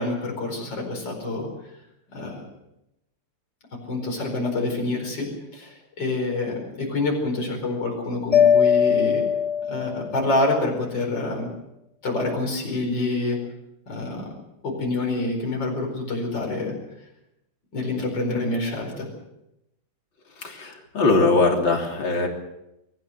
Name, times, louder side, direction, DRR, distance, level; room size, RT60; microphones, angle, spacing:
voice 1, 0.0-1.5 2.1-2.4 3.9-9.2 9.7-11.5 12.0-13.4 13.9-14.3 14.6-16.7 17.7-19.1, left 2 dB, 70° left, 1 dB, 5.4 m, -27 dB
Mallet percussion, 8.3-10.4, left 8 dB, 25° left, 0.9 m, -20 dB
voice 2, 20.4-22.3, left 3 dB, 90° left, 1 dB, 4.1 m, -21 dB
23.5 x 15.0 x 7.9 m, 0.87 s
omnidirectional pair, 2.0 m